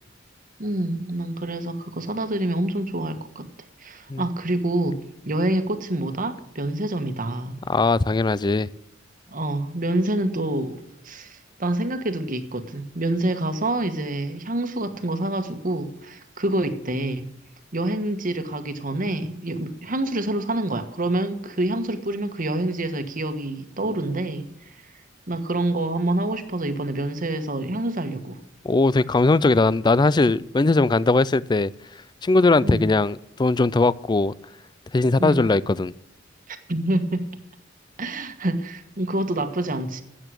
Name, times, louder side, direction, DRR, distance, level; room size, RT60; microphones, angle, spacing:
voice 1, 0.6-3.5 3.8-7.6 9.3-17.3 17.7-24.5 25.3-28.4 32.6-32.9 35.2-35.5 36.5-37.2 38.0-40.0, right 1 dB, 45° right, 8 dB, 1.4 m, -27 dB
voice 2, 7.7-8.7 28.6-31.7 32.2-34.3 34.9-35.9, left 3 dB, 20° left, 20 dB, 0.4 m, -19 dB
14.0 x 9.0 x 6.4 m, 0.82 s
head